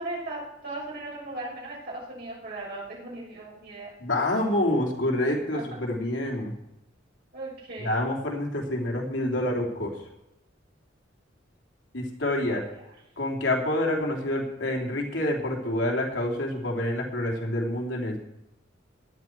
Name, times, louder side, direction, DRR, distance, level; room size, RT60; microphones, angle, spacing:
voice 1, 0.0-3.9 5.5-5.6 7.3-8.0 12.5-12.6, right 2 dB, 55° right, -4 dB, 7.0 m, -37 dB
voice 2, 4.0-6.5 7.8-10.0 11.9-12.6 13.2-18.2, left 1 dB, 65° left, -1 dB, 3.1 m, -27 dB
18.5 x 11.0 x 4.6 m, 0.87 s
head